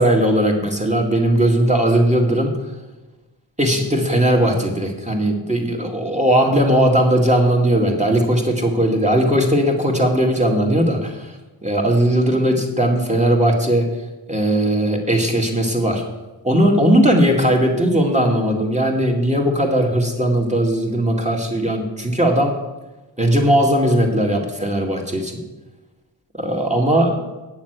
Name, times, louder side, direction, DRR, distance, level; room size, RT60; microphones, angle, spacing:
voice 1, 0.0-2.6 3.6-11.4 11.6-13.9 14.3-16.0 16.4-22.6 23.2-25.4 26.3-27.2, right 1 dB, 15° right, 0 dB, 2.2 m, -18 dB
8.9 x 7.1 x 8.1 m, 1.1 s
wide cardioid pair, 65°, 43 cm